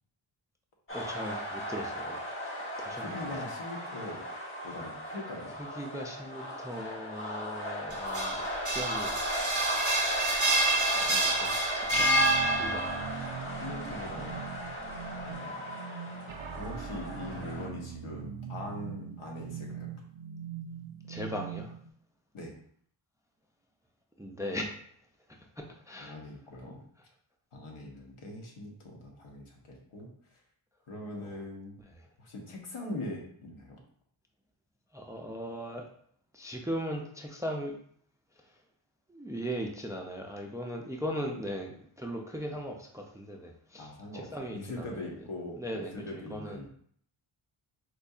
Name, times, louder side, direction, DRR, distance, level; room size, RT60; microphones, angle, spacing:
sound 1, 0.9-17.7, equal, 25° left, 0.9 m, -37 dB
voice 1, 0.9-2.2 2.8-3.2 5.6-9.2 11.0-13.0 21.1-21.7 24.2-24.7 25.6-26.2 34.9-35.8 36.3-37.8 39.1-45.0 45.6-46.7, equal, 5° right, 2 dB, 0.3 m, -38 dB
voice 2, 2.9-4.2 4.6-5.5 13.0-13.1 13.6-14.4 15.3-15.5 16.0-16.1 16.5-19.9 22.3-22.5 26.0-26.8 27.5-30.1 30.9-31.8 32.2-33.8 43.8-46.7, left 1 dB, 80° left, 0 dB, 1.1 m, -41 dB
sound 2, 7.9-13.1, right 2 dB, 35° right, 0.8 m, -27 dB
sound 3, 11.9-21.9, right 7 dB, 70° right, 0.6 m, -42 dB
4.3 x 2.6 x 2.3 m, 0.62 s
cardioid pair, 75°, 49 cm